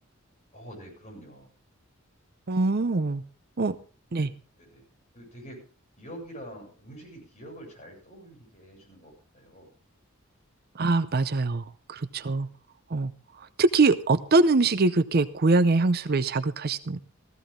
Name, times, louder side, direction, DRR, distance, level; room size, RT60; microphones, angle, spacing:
voice 1, 0.5-1.5 2.8-3.1 4.1-4.3 4.6-4.8 5.1-5.6 6.0-9.7 12.2-12.5, equal, 35° left, 0 dB, 7.4 m, -46 dB
voice 2, 2.5-3.2 3.6-3.8 4.1-4.3 10.8-12.5 12.9-13.1 13.6-17.0, right 3 dB, 50° right, 13 dB, 0.6 m, -23 dB
15.5 x 15.0 x 3.7 m, 0.36 s
head